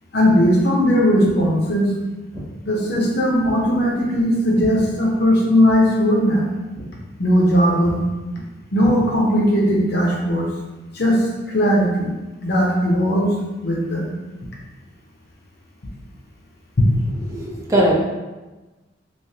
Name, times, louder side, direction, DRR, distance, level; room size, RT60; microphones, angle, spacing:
voice 1, 0.1-1.9 2.7-6.4 7.2-8.0 8.7-10.5 10.9-11.2 11.5-12.1 12.4-13.3 13.6-14.1, equal, 60° left, -2 dB, 0.7 m, -18 dB
Walk footsteps, 1.2-1.5 2.3-2.5 3.4-3.6 4.0-5.4 5.7-5.9 6.3-6.4 6.8-7.0 7.3-7.5 7.8-8.0 8.8-9.5, equal, 25° left, 0.8 m, -36 dB
voice 2, 17.3-17.9, right 1 dB, 15° right, -4 dB, 0.5 m, -19 dB
3.3 x 2.9 x 2.8 m, 1.2 s
head